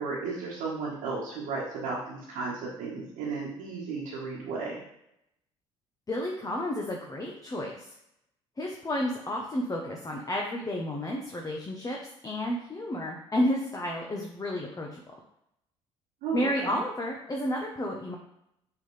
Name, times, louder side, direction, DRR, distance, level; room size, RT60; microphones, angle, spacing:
voice 1, 0.0-4.8 16.2-16.8, right 4 dB, 65° right, -6 dB, 1.7 m, -34 dB
voice 2, 6.1-7.9 8.6-15.0 16.3-18.2, left 1 dB, 25° left, 0 dB, 1.1 m, -31 dB
7.3 x 4.0 x 3.4 m, 0.79 s
hypercardioid pair, 55°, 15 cm